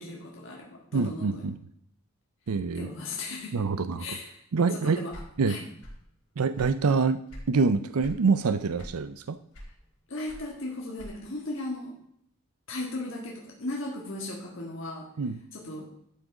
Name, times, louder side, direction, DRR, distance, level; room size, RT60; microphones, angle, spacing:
voice 1, 0.0-1.4 2.7-3.7 4.0-4.4 4.7-5.7 9.6-9.7 10.1-12.0 12.7-15.1 15.5-15.9, left 2 dB, 55° left, -2 dB, 1.9 m, -37 dB
voice 2, 0.9-1.6 2.5-2.9 3.5-4.0 4.5-5.0 5.4-5.6 6.4-7.2 7.5-9.4 15.2-15.4, right 4 dB, 80° right, 12 dB, 0.5 m, -25 dB
sound 1, 5.1-6.1 6.4-7.5 8.0-8.3 8.7-9.2 9.5-11.4, equal, 75° left, 4.5 m, -44 dB
12.0 x 6.2 x 4.9 m, 0.71 s
head